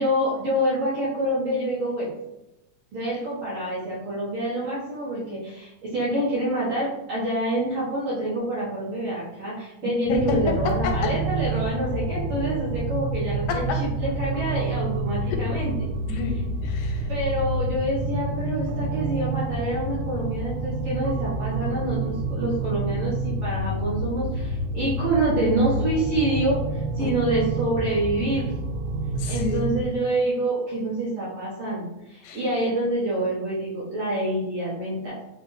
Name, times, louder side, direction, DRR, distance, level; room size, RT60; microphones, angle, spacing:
voice 1, 0.0-2.1 2.9-15.7 17.1-26.6 26.9-28.5 29.3-35.2, right 1 dB, 55° right, -9 dB, 1.5 m, -27 dB
voice 2, 9.8-10.2 11.0-11.1 16.1-17.1 27.0-27.1 29.2-29.7 32.2-32.4, left 6 dB, 85° left, 3 dB, 2.1 m, -32 dB
sound 1, 10.1-29.8, right 2 dB, 85° right, 2.1 m, -28 dB
5.5 x 2.4 x 2.6 m, 0.89 s
omnidirectional pair, 3.4 m